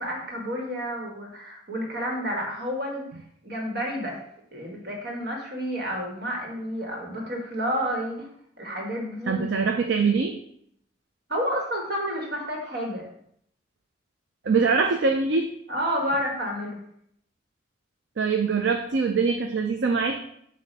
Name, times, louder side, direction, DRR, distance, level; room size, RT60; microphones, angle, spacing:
voice 1, 0.0-3.0 3.4-4.2 4.5-8.3 8.6-9.5 11.3-13.0 15.7-16.8, equal, 55° right, 0 dB, 1.6 m, -30 dB
voice 2, 9.3-10.4 14.4-15.5 18.2-20.2, right 4 dB, 70° right, 4 dB, 0.5 m, -23 dB
7.4 x 2.7 x 5.3 m, 0.70 s
head